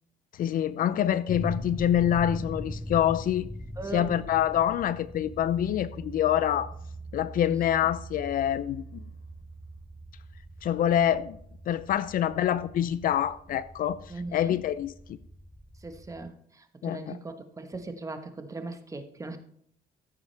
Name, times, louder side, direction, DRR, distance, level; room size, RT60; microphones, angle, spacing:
voice 1, 0.4-3.5 3.9-6.7 7.1-8.8 10.6-11.4 11.7-14.0 14.3-14.9 16.8-17.2, left 10 dB, 55° left, 0.6 m, -26 dB
sound 1, 1.3-16.3, equal, ahead, 0.6 m, -41 dB
voice 2, 3.8-4.2 7.5-7.9 14.1-14.6 15.8-19.4, right 3 dB, 20° right, 1.3 m, -39 dB
14.5 x 8.4 x 3.4 m
cardioid pair, 110°, 17 cm